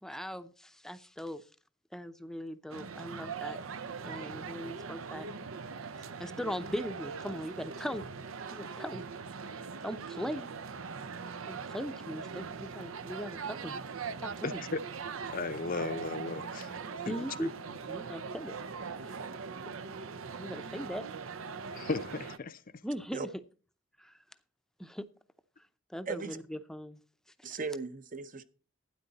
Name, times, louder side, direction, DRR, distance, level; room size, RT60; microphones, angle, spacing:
voice 1, 0.0-1.5 1.9-3.6 4.0-5.3 6.0-8.0 8.5-9.0 9.6-10.5 11.5-13.8 14.2-14.6 17.0-17.5 17.9-18.6 19.0-19.2 20.4-21.1 22.8-23.3 24.0-24.2 24.8-25.1 25.9-27.0 27.4-27.6, equal, ahead, 0.6 m, -39 dB
sound 1, 2.7-22.4, right 5 dB, 85° right, 0.7 m, -41 dB
voice 2, 14.4-14.8 15.3-16.8 17.0-17.5 21.6-22.6, left 3 dB, 45° left, 0.6 m, -36 dB
voice 3, 26.1-26.4 27.4-28.4, right 4 dB, 40° right, 0.7 m, -37 dB
12.5 x 9.8 x 4.0 m
head